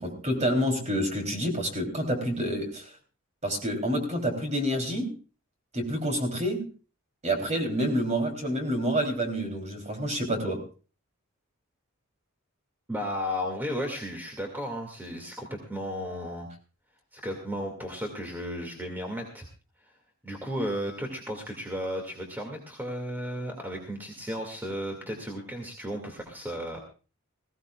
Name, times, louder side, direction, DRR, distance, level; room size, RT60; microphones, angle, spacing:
voice 1, 0.0-2.9 3.4-5.1 5.7-6.7 7.2-10.6, equal, 35° right, 3 dB, 3.4 m, -28 dB
voice 2, 12.9-16.5 17.1-19.5 20.2-26.8, equal, 10° right, 2 dB, 2.3 m, -34 dB
21.0 x 16.0 x 2.4 m, 0.35 s
head